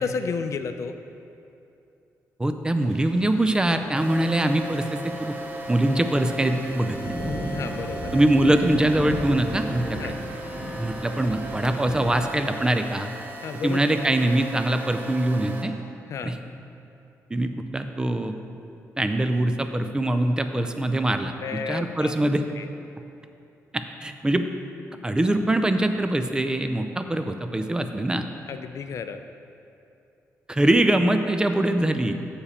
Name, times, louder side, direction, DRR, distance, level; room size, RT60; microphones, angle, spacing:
voice 1, 0.0-1.0 7.5-8.2 10.0-10.1 13.4-13.8 16.1-16.3 21.4-22.1 22.5-22.7 28.5-29.2, left 5 dB, 60° left, 8 dB, 0.4 m, -31 dB
voice 2, 2.4-5.4 5.7-7.0 8.1-10.1 10.8-13.1 13.6-15.7 16.2-16.4 17.3-18.4 19.0-22.4 23.7-24.5 25.0-28.2 30.5-32.1, right 1 dB, 15° right, 7 dB, 0.4 m, -23 dB
sound 1, 2.8-12.1, equal, 5° left, 1.8 m, -35 dB
sound 2, 3.9-15.6, right 2 dB, 30° right, 0.8 m, -37 dB
7.0 x 6.9 x 4.3 m, 2.7 s
cardioid pair, 115°, 6 cm